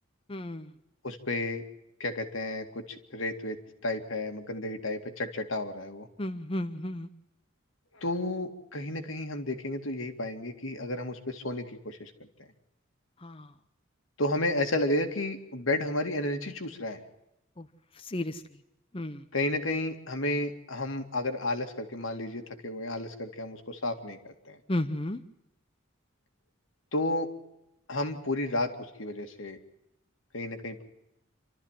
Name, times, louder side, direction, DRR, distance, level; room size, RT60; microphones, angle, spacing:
voice 1, 0.3-0.7 6.2-7.1 13.2-13.5 17.6-17.7 18.0-18.4 18.9-19.2 24.7-25.2, left 1 dB, 25° left, 9 dB, 0.7 m, -33 dB
voice 2, 1.0-1.6 2.0-6.1 7.9-12.1 14.2-17.0 19.3-24.2 24.5-24.6 26.9-27.3 27.9-29.6 30.3-30.8, left 1 dB, 80° left, 5 dB, 2.3 m, -32 dB
28.0 x 13.5 x 7.4 m, 0.87 s
head